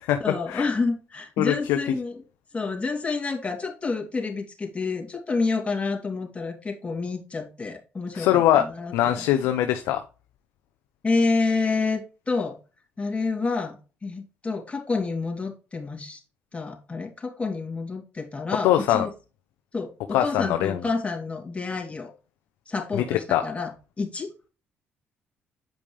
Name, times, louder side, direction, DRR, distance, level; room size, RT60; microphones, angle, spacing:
voice 1, 0.2-2.2 2.5-9.3 11.0-12.0 12.3-12.6 13.0-16.2 16.5-19.1 19.7-22.1 22.7-23.7 24.0-24.5, left 4 dB, 30° left, 1 dB, 2.8 m, -28 dB
voice 2, 1.4-1.8 8.1-8.6 8.9-10.0 18.6-19.1 20.1-20.8 22.9-23.4, left 12 dB, 85° left, 7 dB, 0.6 m, -22 dB
8.8 x 5.1 x 3.2 m, 0.33 s
supercardioid pair, 65°, 5 cm